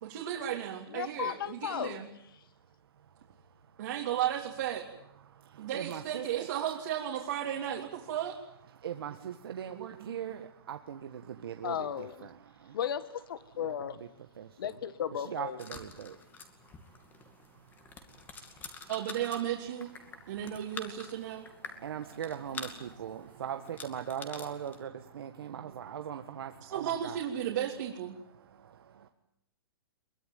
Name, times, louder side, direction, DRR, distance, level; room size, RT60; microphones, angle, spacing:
voice 1, 0.0-2.1 3.8-4.8 5.6-8.4 9.7-10.1 18.9-19.9 20.3-21.5 25.6-25.7 26.6-28.2, right 10 dB, 55° right, 3.4 m, -34 dB
voice 2, 0.9-2.0 11.6-12.3 12.7-14.0 14.6-15.6, left 9 dB, 65° left, 1.8 m, -35 dB
voice 3, 3.0-3.9 5.2-6.5 8.7-12.8 13.6-14.0 14.4-14.8 15.2-18.9 20.0-20.6 21.3-27.2 28.3-29.1, right 9 dB, 70° right, 1.7 m, -42 dB
sound 1, 15.6-24.8, left 5 dB, 15° left, 2.4 m, -47 dB
23.0 x 21.0 x 9.3 m
hypercardioid pair, 155°, 13 cm